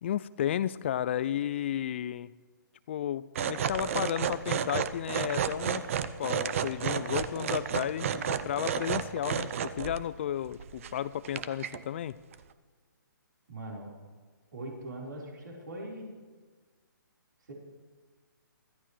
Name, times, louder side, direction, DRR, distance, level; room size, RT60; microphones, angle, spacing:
voice 1, 0.0-2.3 2.9-5.8 6.2-12.2, left 10 dB, 35° left, 16 dB, 0.4 m, -33 dB
sound 1, 3.3-10.0 10.4-10.9 11.2-11.8 12.3-12.4, right 8 dB, 40° right, 0.7 m, -32 dB
voice 2, 13.5-13.9 14.5-16.1 17.4-17.5, right 1 dB, 70° right, -3 dB, 4.4 m, -41 dB
23.5 x 14.5 x 3.2 m, 1.5 s
hypercardioid pair, 150°, 11 cm